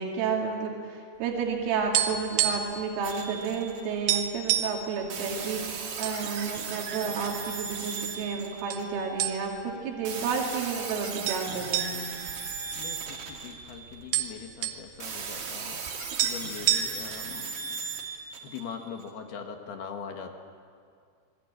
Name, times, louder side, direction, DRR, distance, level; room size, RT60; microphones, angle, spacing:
voice 1, 0.0-12.1, right 5 dB, 85° right, 0 dB, 5.0 m, -31 dB
sound 1, 1.4-2.8 3.1-3.3 3.6-3.7 4.1-4.8 5.5-6.2 6.6-6.7 7.4-8.0 8.7-8.9 9.2-9.7 10.1-10.2 11.2-13.3 13.6-13.7 13.9-14.8 15.9-16.0 16.2-17.2, right 10 dB, 70° right, 3.2 m, -28 dB
sound 2, 3.0-4.2 5.1-9.2 10.0-14.2 15.0-19.1, right 5 dB, 50° right, 3.9 m, -37 dB
Wind instrument woodwind instrument, 8.7-13.1, right 2 dB, 85° left, 5.3 m, -46 dB
voice 2, 12.8-17.8 18.4-20.4, left 6 dB, 65° left, 4 dB, 3.3 m, -42 dB
26.5 x 20.5 x 8.7 m, 2.2 s
omnidirectional pair, 5.6 m